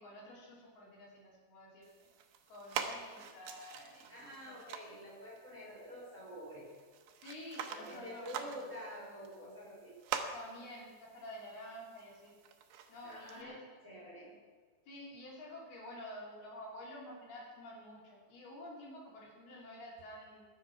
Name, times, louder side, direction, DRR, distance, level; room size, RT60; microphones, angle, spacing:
voice 1, 0.0-2.1 2.5-4.6 7.2-9.0 10.3-12.3 12.9-13.6 14.9-20.5, left 1 dB, 60° left, -4 dB, 5.1 m, -50 dB
sound 1, 1.8-13.4, right 7 dB, 75° right, 3.0 m, -46 dB
voice 2, 4.1-6.7 7.7-10.0 13.0-13.6 13.8-14.3, equal, 15° right, -6 dB, 4.0 m, -48 dB
21.5 x 8.1 x 5.9 m, 1.5 s
omnidirectional pair, 5.2 m